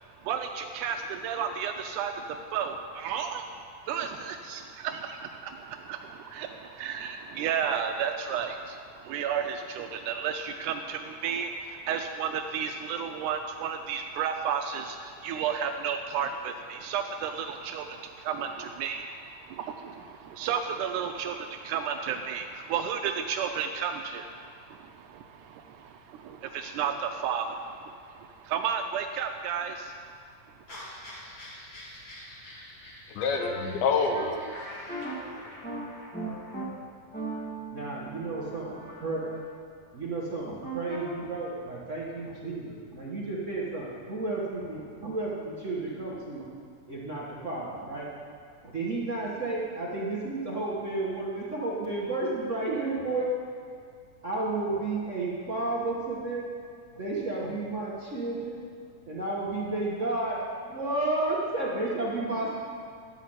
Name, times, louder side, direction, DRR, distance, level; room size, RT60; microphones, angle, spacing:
voice 1, 0.2-30.0, right 7 dB, 80° right, 5 dB, 2.0 m, -33 dB
sound 1, 30.7-36.6, left 1 dB, 40° left, 2.5 m, -46 dB
voice 2, 33.1-34.4, left 4 dB, 80° left, 4 dB, 2.4 m, -26 dB
sound 2, 33.4-33.5 34.1-34.3 34.9-35.1 35.6-35.8 36.1-36.6 37.1-39.4 40.6-41.1, right 2 dB, 10° left, 0.5 m, -38 dB
voice 3, 37.7-39.2 39.9-46.4 46.9-48.1 48.6-53.3 54.2-56.4 56.9-58.6 59.1-60.4 60.7-62.5, right 2 dB, 65° right, -6 dB, 0.7 m, -32 dB
12.0 x 5.8 x 7.8 m, 2.2 s
omnidirectional pair, 3.6 m